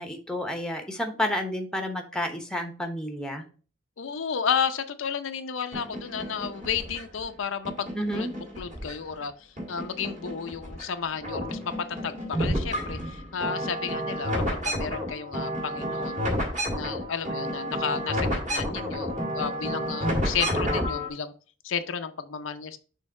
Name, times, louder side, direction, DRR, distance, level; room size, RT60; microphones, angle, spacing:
voice 1, 0.0-3.4 7.9-8.3, left 1 dB, 5° left, 5 dB, 0.9 m, -30 dB
voice 2, 4.0-11.7 12.0-16.3 16.7-21.3 21.6-22.8, left 7 dB, 75° left, 8 dB, 0.6 m, -32 dB
sound 1, 5.7-7.2 7.6-9.2 9.6-10.9 11.1-21.1, equal, 40° right, 2.1 m, -31 dB
6.3 x 3.5 x 4.7 m, 0.38 s
head